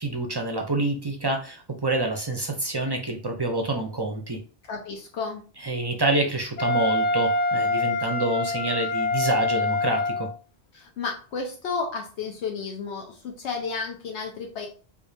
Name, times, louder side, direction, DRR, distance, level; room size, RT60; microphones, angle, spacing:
voice 1, 0.0-4.4 5.6-10.3, right 2 dB, 35° right, 3 dB, 0.4 m, -27 dB
voice 2, 4.7-5.4 10.7-14.7, left 5 dB, 85° left, 1 dB, 1.0 m, -32 dB
Wind instrument woodwind instrument, 6.6-10.3, left 2 dB, 50° left, 0.5 m, -25 dB
4.8 x 2.4 x 2.7 m, 0.36 s
omnidirectional pair, 1.1 m